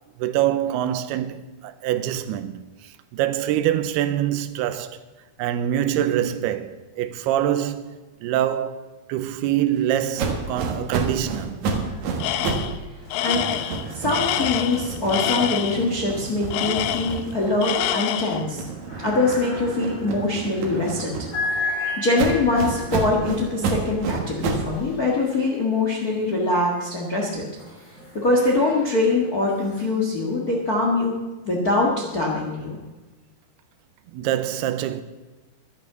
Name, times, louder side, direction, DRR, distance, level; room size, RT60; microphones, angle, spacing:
voice 1, 0.2-5.0 5.4-11.7 34.1-35.0, right 11 dB, 90° right, 2.8 m, -25 dB
sound 1, 10.2-12.8 13.1-17.8 18.3-21.6 22.1-24.7, right 4 dB, 60° right, 2.4 m, -30 dB
sound 2, 11.8-12.4 12.7-25.9 26.6-31.0, left 3 dB, 30° left, 5.3 m, -37 dB
Tools, 12.2-12.8 13.1-15.8 16.5-17.3 17.6-18.4, left 12 dB, 80° left, 2.1 m, -26 dB
voice 2, 13.9-18.7 19.0-21.3 21.6-21.7 22.0-27.5 28.1-31.2 31.4-32.8, left 2 dB, 50° left, 1.1 m, -23 dB
12.0 x 11.0 x 6.7 m
omnidirectional pair, 4.5 m